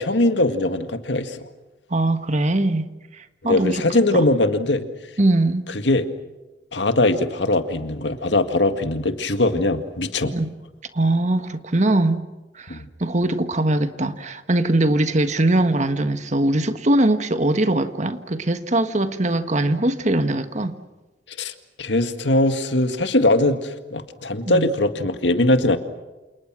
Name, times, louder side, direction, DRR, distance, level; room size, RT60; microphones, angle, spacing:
voice 1, 0.0-1.4 3.4-4.9 5.8-6.0 6.7-10.3 12.7-12.9 21.4-25.8, left 2 dB, 80° left, 2.0 m, -21 dB
voice 2, 1.9-2.9 3.2-3.8 4.1-4.2 5.2-5.7 10.2-10.6 10.9-12.2 12.5-20.8 24.5-24.7, right 1 dB, 40° right, 1.5 m, -21 dB
28.5 x 28.5 x 6.3 m
head